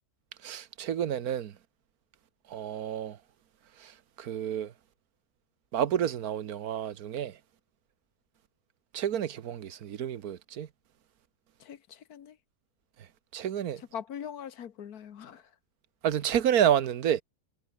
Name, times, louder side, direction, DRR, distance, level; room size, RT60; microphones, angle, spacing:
voice 1, 0.4-1.5 2.5-3.2 3.8-3.9 4.2-4.7 5.7-7.4 8.9-10.7 13.3-13.8 16.0-17.2, right 9 dB, 75° right, 1.5 m, -29 dB
voice 2, 11.6-12.3 13.9-15.4, left 9 dB, 80° left, 1.7 m, -41 dB
omnidirectional pair, 1.6 m